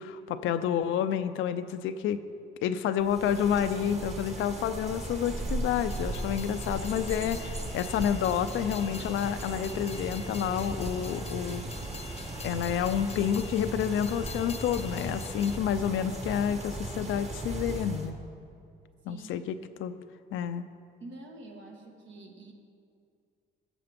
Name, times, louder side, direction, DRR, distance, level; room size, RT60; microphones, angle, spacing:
voice 1, 0.0-2.2 2.6-11.7 12.4-18.2 19.1-19.5 19.8-20.0 20.3-20.7, left 9 dB, 85° left, 11 dB, 0.5 m, -29 dB
sound 1, 3.0-18.1, right 2 dB, 35° right, 1.5 m, -37 dB
Train, 5.8-15.6, left 6 dB, 30° left, 0.6 m, -47 dB
voice 2, 19.1-19.4 21.0-22.5, right 2 dB, 70° right, 1 dB, 1.8 m, -47 dB
14.5 x 6.7 x 5.2 m, 2.4 s
cardioid pair, 90°, 20 cm